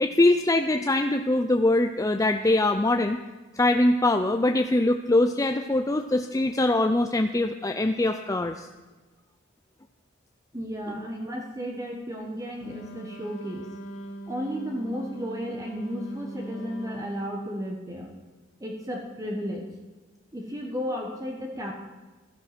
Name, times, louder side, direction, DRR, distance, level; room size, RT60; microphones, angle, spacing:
voice 1, 0.0-3.2 3.5-8.7, left 2 dB, 15° left, 6 dB, 0.5 m, -23 dB
voice 2, 10.5-13.7 14.3-18.1 18.6-19.7 20.3-21.8, equal, 15° right, 1 dB, 1.3 m, -33 dB
Wind instrument woodwind instrument, 12.5-17.3, right 1 dB, 85° left, 3.1 m, -40 dB
16.0 x 13.0 x 6.0 m, 1.2 s
head